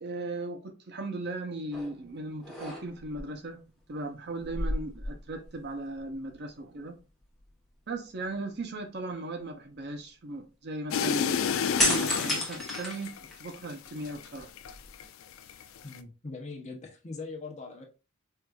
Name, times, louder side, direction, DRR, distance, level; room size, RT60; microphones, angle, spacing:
voice 1, 0.0-7.0 7.9-13.1 13.4-14.5, right 2 dB, 50° right, 0.7 m, -37 dB
sound 1, 1.7-2.0 2.4-3.2 4.4-5.7 6.0-6.1 11.8-13.6 14.1-15.0, left 1 dB, ahead, 1.0 m, -31 dB
sound 2, 10.9-15.1 15.4-16.0, left 7 dB, 65° left, 0.3 m, -30 dB
voice 2, 15.8-17.9, left 3 dB, 35° left, 0.8 m, -41 dB
4.5 x 2.5 x 2.3 m
head